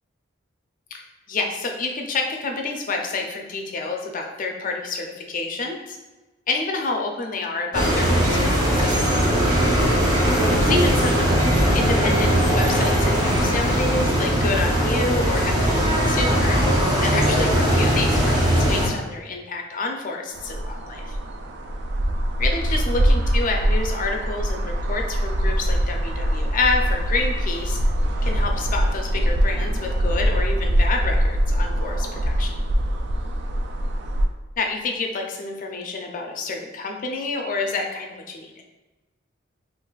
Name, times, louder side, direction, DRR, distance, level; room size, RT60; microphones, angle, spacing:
voice 1, 0.9-6.0 6.5-9.1 10.2-11.5 11.7-16.6 17.0-21.2 22.4-27.8 28.2-32.5 34.6-38.6, left 3 dB, 45° left, 2 dB, 0.4 m, -28 dB
sound 1, 7.7-18.9, equal, 20° right, 0.6 m, -19 dB
Birds & traffic, 20.3-34.3, equal, 65° right, 0.3 m, -23 dB
3.9 x 2.4 x 2.3 m, 1.1 s
head